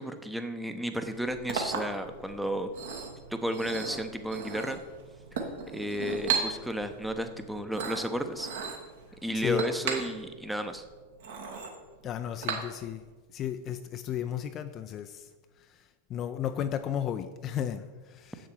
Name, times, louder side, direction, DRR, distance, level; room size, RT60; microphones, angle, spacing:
voice 1, 0.0-2.7 3.3-4.8 5.7-8.5 9.2-10.8, equal, ahead, 7 dB, 0.6 m, -33 dB
Chink clink, 1.0-13.1, right 5 dB, 60° right, 1.2 m, -37 dB
voice 2, 5.3-5.7 9.3-9.6 12.0-13.0 13.3-15.3 15.6-18.5, left 10 dB, 30° left, 9 dB, 0.3 m, -34 dB
7.5 x 6.5 x 4.5 m, 1.4 s
figure-of-eight pair, 90°, 0 cm